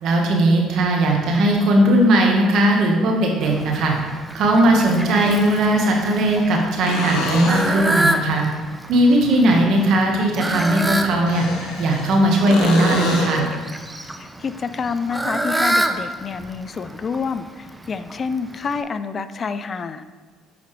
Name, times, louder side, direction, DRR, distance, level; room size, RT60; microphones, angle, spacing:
voice 1, 0.0-3.9 4.3-8.5 8.9-11.4 11.8-13.5, right 1 dB, 65° right, 1 dB, 1.3 m, -18 dB
sound 1, 1.5-1.6 3.6-3.7 5.0-5.8 6.8-8.0 11.1-12.2 12.5-13.5 17.2-17.3, left 2 dB, 80° left, 1.1 m, -27 dB
Fowl, 3.4-18.8, right 1 dB, 10° right, 0.5 m, -28 dB
voice 2, 14.2-20.0, left 5 dB, 40° left, 12 dB, 0.4 m, -28 dB
6.9 x 5.2 x 3.2 m, 1.6 s
supercardioid pair, 75°, 0 cm